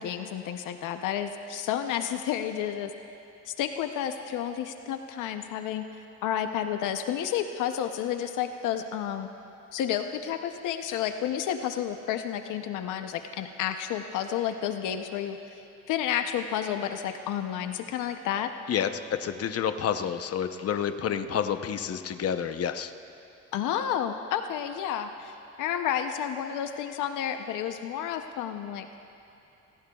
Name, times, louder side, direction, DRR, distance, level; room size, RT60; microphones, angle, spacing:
voice 1, 0.0-2.9 3.4-5.9 6.2-9.3 9.7-15.4 15.9-18.5 23.5-28.9, left 9 dB, 90° left, 7 dB, 0.7 m, -31 dB
voice 2, 19.2-22.9, left 8 dB, 50° left, 8 dB, 0.8 m, -29 dB
27.5 x 18.5 x 2.3 m, 3.0 s
cardioid pair, 90°, 30 cm